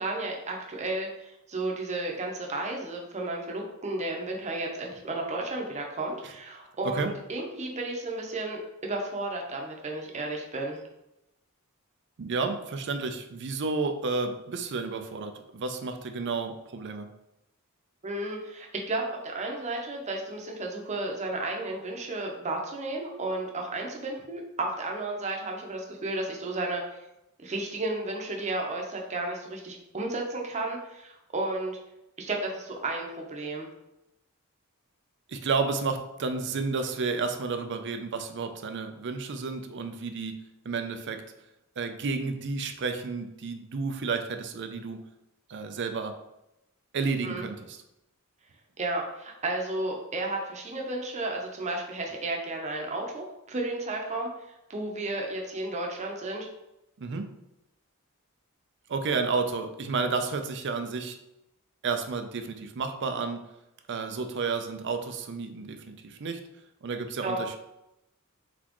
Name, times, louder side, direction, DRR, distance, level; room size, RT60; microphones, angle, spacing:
voice 1, 0.0-10.8 18.0-27.0 27.4-31.8 32.3-33.7 47.2-47.5 48.8-54.3 54.7-56.5 67.2-67.6, right 2 dB, 35° right, 1 dB, 0.8 m, -33 dB
voice 2, 12.2-17.1 35.3-41.2 41.8-45.0 45.5-46.2 46.9-47.8 57.0-57.3 58.9-61.2 61.8-63.5 63.9-66.4 66.8-67.6, right 4 dB, 55° right, 7 dB, 0.5 m, -31 dB
4.2 x 4.2 x 3.0 m, 0.89 s
head